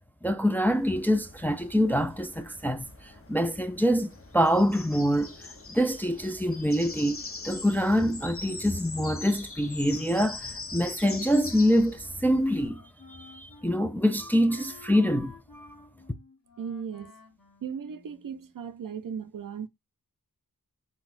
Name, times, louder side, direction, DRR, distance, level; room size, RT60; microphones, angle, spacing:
voice 1, 0.2-12.8 13.1-15.7, equal, 5° left, 0.3 m, -25 dB
sound 1, 0.6-12.7, left 3 dB, 35° left, 0.7 m, -43 dB
Wind instrument woodwind instrument, 11.0-18.5, left 4 dB, 70° left, 1.2 m, -53 dB
voice 2, 16.6-17.1 17.6-19.7, right 7 dB, 65° right, 0.5 m, -37 dB
4.0 x 2.2 x 2.4 m
wide cardioid pair, 50°, 36 cm